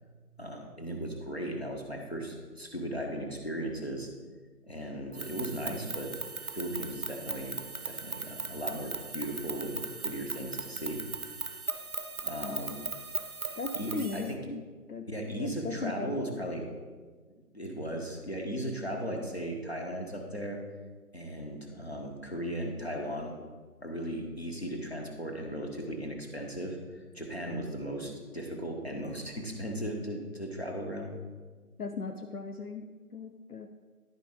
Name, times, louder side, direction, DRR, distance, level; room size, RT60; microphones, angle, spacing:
voice 1, 0.3-4.1 4.7-6.1 6.5-11.0 12.2-12.8 13.7-14.4 15.1-16.6 17.3-20.6 21.1-23.3 23.8-31.1, equal, 40° left, 1 dB, 1.3 m, -37 dB
sound 1, 5.1-14.3, right 5 dB, 65° right, 0.7 m, -38 dB
voice 2, 12.4-12.9 13.6-14.6 14.9-15.1 15.4-16.3 31.8-34.0, left 4 dB, 75° left, 5 dB, 0.7 m, -38 dB
11.0 x 5.1 x 5.0 m, 1.4 s
figure-of-eight pair, 180°, 47 cm